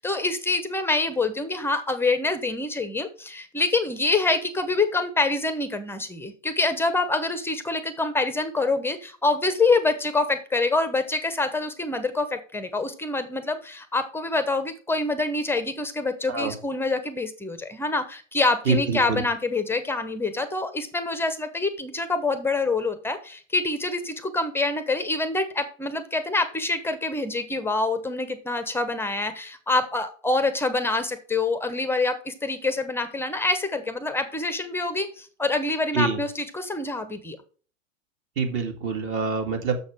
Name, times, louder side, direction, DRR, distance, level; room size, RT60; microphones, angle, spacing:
voice 1, 0.0-37.4, left 3 dB, 5° left, 11 dB, 0.8 m, -26 dB
voice 2, 18.7-19.2 35.9-36.2 38.4-39.8, right 4 dB, 30° right, 5 dB, 2.1 m, -25 dB
6.9 x 6.3 x 4.8 m, 0.39 s
figure-of-eight pair, 105°, 39 cm